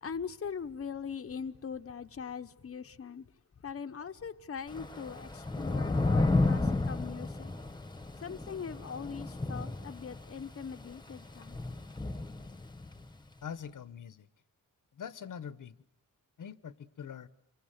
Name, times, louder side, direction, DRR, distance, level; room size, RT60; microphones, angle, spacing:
voice 1, 0.0-3.2 3.6-7.5 8.2-11.6, left 6 dB, 40° left, 1.0 m, -41 dB
Thunder / Rain, 4.7-13.0, left 2 dB, 15° left, 1.4 m, -32 dB
voice 2, 13.4-14.3 14.9-15.8 16.4-17.3, left 7 dB, 70° left, 1.1 m, -43 dB
27.5 x 23.5 x 9.0 m
wide cardioid pair, 135°, 33 cm